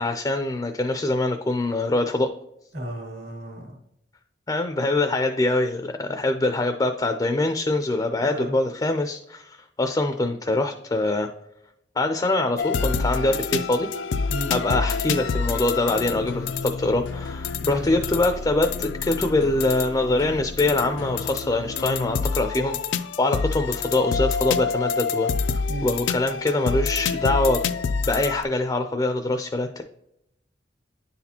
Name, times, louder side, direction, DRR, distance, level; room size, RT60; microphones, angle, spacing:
voice 1, 0.0-2.3 4.5-11.3 12.0-13.9 14.5-27.6 28.0-29.8, left 2 dB, 20° left, 6 dB, 0.4 m, -24 dB
voice 2, 2.7-3.8 8.2-8.6 14.3-14.5 17.6-17.9 25.7-25.9, right 1 dB, 65° right, 1 dB, 1.9 m, -33 dB
Sad Hard Beat., 12.6-28.4, left 5 dB, 90° left, 0.4 m, -28 dB
9.7 x 4.1 x 2.8 m, 0.80 s
head